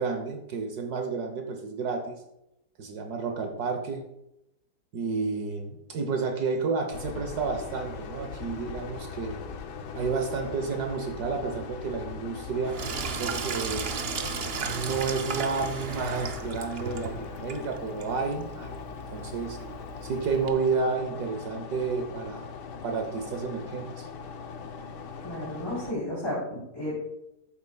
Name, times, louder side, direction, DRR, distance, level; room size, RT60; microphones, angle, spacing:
voice 1, 0.0-2.2 2.8-4.0 4.9-9.4 9.9-12.8 13.2-13.9 14.6-19.6 20.0-22.5 22.8-24.1, right 4 dB, 70° right, 5 dB, 1.4 m, -31 dB
sound 1, 6.9-25.9, left 5 dB, 80° left, 1.4 m, -40 dB
Sink (filling or washing), 12.7-20.5, right 5 dB, 55° right, 0.7 m, -36 dB
voice 2, 25.2-27.0, left 1 dB, 15° left, -7 dB, 3.1 m, -33 dB
14.0 x 8.0 x 2.3 m, 0.85 s
omnidirectional pair, 1.8 m